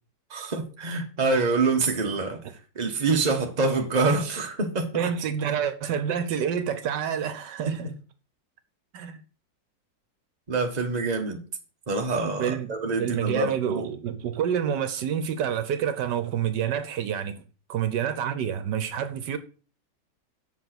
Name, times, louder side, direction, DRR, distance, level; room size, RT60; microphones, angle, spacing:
voice 1, 0.3-2.4 2.7-5.1 7.7-7.8 10.5-11.4 11.9-13.9, right 3 dB, 25° right, 1.2 m, -26 dB
voice 2, 4.9-7.9 8.9-9.2 12.4-17.4 17.7-19.4, right 8 dB, 75° right, 1.4 m, -28 dB
7.6 x 5.4 x 6.0 m
omnidirectional pair, 1.9 m